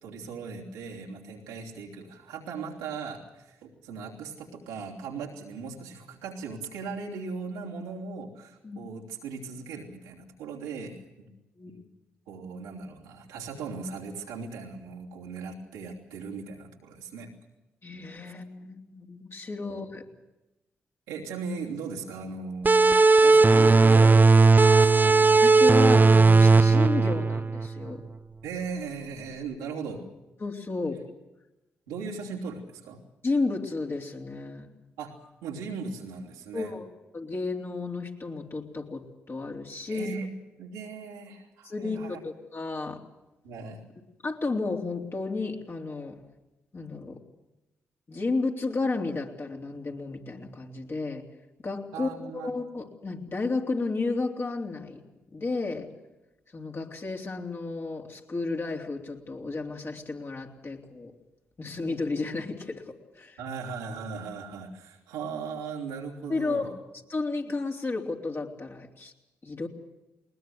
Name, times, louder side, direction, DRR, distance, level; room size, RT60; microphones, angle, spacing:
voice 1, 0.0-11.3 11.7-11.8 12.3-17.3 19.7-19.9 21.1-25.2 28.4-30.0 31.9-33.0 35.0-35.2 35.4-36.7 39.9-40.3 40.6-42.2 43.4-43.8 51.9-52.5 63.4-66.7, right 5 dB, 90° right, -2 dB, 3.1 m, -38 dB
voice 2, 17.8-20.0 25.4-28.0 30.4-31.0 33.2-34.7 36.5-36.9 37.1-40.1 41.6-43.0 44.2-46.2 46.7-47.2 48.1-51.2 51.6-55.0 55.3-55.9 56.5-61.1 61.6-63.4 66.3-66.8 67.1-69.1 69.4-69.7, left 3 dB, 45° left, 1 dB, 3.4 m, -32 dB
sound 1, 22.7-27.9, right 3 dB, 30° right, 0.8 m, -17 dB
20.5 x 20.5 x 7.9 m, 1.0 s
hypercardioid pair, 45°, 6 cm